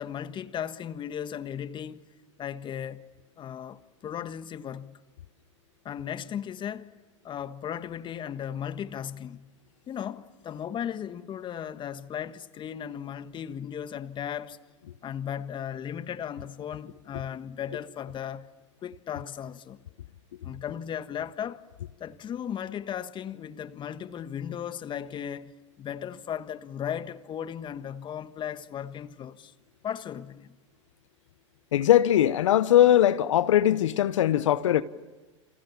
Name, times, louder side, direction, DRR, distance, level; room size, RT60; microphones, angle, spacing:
voice 1, 0.0-2.0 2.4-3.1 3.4-5.0 5.8-6.9 7.2-9.5 9.9-14.6 15.0-18.5 18.8-19.8 20.4-21.6 22.0-25.5 25.8-29.5 29.8-30.5, left 9 dB, 30° left, 1.4 m, -36 dB
voice 2, 31.7-34.8, left 12 dB, 75° left, 1.0 m, -20 dB
29.5 x 27.5 x 7.2 m
hypercardioid pair, 100°, 16 cm